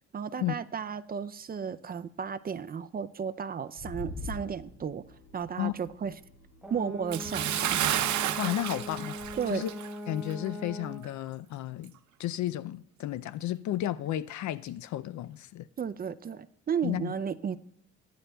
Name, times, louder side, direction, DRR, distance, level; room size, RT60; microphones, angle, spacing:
voice 1, 0.1-5.0 5.3-6.1 6.7-7.8 9.4-9.6 15.8-17.6, right 7 dB, 30° right, 0.4 m, -34 dB
sound 1, 3.8-9.4, left 2 dB, 50° left, 2.7 m, -46 dB
Brass instrument, 6.6-11.1, equal, 5° right, 1.1 m, -41 dB
Bathtub (filling or washing) / Splash splatter, 7.1-10.0 10.3-10.5 11.0-11.1, right 11 dB, 70° right, 0.7 m, -31 dB
voice 2, 8.4-9.1 9.5-9.7 10.1-11.9 12.2-15.7 16.8-17.1, left 13 dB, 70° left, 0.5 m, -33 dB
18.0 x 10.5 x 2.3 m
cardioid pair, 90°, 30 cm